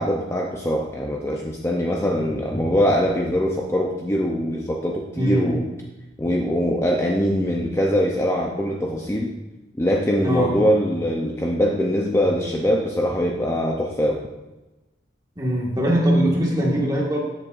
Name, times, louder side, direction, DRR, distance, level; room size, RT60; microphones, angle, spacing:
voice 1, 0.0-5.6 6.2-9.3 9.8-14.2, equal, 15° left, -1 dB, 0.6 m, -22 dB
voice 2, 5.2-5.5 10.2-10.5 15.4-17.2, equal, 20° right, -3 dB, 1.8 m, -21 dB
13.5 x 7.7 x 2.6 m, 1.1 s
head